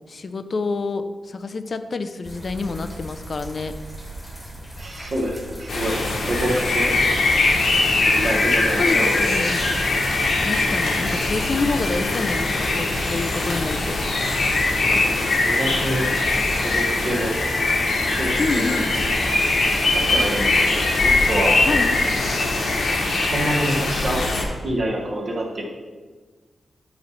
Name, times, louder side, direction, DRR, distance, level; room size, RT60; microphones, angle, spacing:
voice 1, 0.1-3.7 8.8-9.6 10.5-14.0 18.4-18.9 21.7-22.3, left 3 dB, 45° left, 10 dB, 0.3 m, -27 dB
sound 1, 2.2-14.9, right 1 dB, 10° left, 1.2 m, -38 dB
voice 2, 4.8-7.1 8.0-9.4 14.9-16.0 16.6-17.3 18.0-18.8 19.8-21.6 23.2-24.2 24.6-25.6, right 1 dB, 50° right, -2 dB, 1.1 m, -27 dB
sound 2, 5.7-24.4, left 2 dB, 70° left, 1.1 m, -21 dB
7.5 x 3.1 x 5.5 m, 1.4 s
wide cardioid pair, 150°, 0 cm